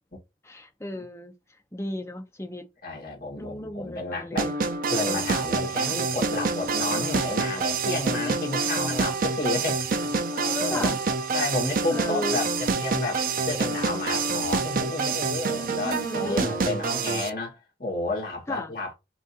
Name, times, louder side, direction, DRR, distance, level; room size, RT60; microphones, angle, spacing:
voice 1, 0.4-2.7 3.4-4.6 5.9-6.0 10.7-11.0 11.9-12.4 15.8-16.6 18.5-18.7, left 1 dB, 15° left, 0.7 m, -35 dB
voice 2, 2.8-4.5 4.9-11.0 11.3-18.9, left 2 dB, 55° left, 1.7 m, -31 dB
sound 1, 4.4-17.3, right 4 dB, 50° right, 0.5 m, -27 dB
5.8 x 2.5 x 2.8 m
head